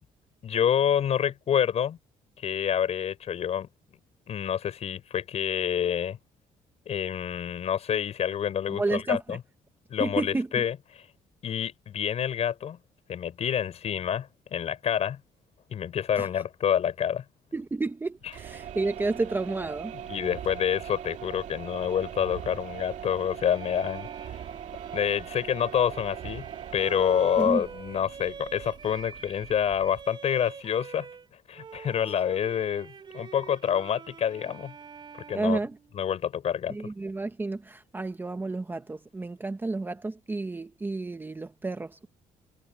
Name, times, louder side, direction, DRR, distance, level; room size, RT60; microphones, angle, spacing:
voice 1, 0.4-2.0 2.4-3.7 4.3-6.2 6.9-9.4 9.9-11.0 11.4-12.8 13.1-15.2 15.7-17.2 20.1-24.4 24.9-26.5 26.7-31.1 31.5-34.7 35.3-35.6 35.9-36.8, left 9 dB, 50° left, 6.0 m, -27 dB
voice 2, 8.7-9.4 10.0-10.5 16.2-16.3 17.5-19.9 27.4-27.6 35.3-35.8 36.7-42.1, right 3 dB, 15° right, 0.9 m, -31 dB
sound 1, 18.2-30.1, right 9 dB, 60° right, 2.1 m, -41 dB
Bowed string instrument, 23.4-31.3 31.5-36.3, right 6 dB, 35° right, 4.1 m, -45 dB
cardioid pair, 140°, 14 cm